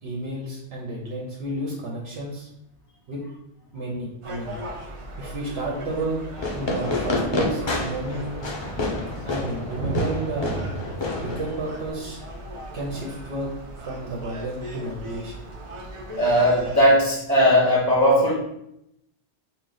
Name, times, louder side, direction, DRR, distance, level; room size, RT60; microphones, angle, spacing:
voice 1, 0.0-2.5 3.1-3.2 3.7-4.6 5.2-6.2 6.5-8.7 9.2-10.6 11.2-12.2 12.7-13.5 13.8-15.4, right 1 dB, 70° right, -3 dB, 1.0 m, -31 dB
Gull seagull, 4.2-16.8, right 1 dB, 50° right, 0.4 m, -38 dB
Fireworks, 6.4-11.9, left 2 dB, 35° left, 0.4 m, -29 dB
Thunder, 7.4-14.1 15.8-15.9, right 4 dB, 90° right, 0.9 m, -37 dB
voice 2, 16.1-18.3, equal, 20° right, -5 dB, 0.8 m, -18 dB
4.4 x 2.1 x 3.8 m, 0.81 s
omnidirectional pair, 1.2 m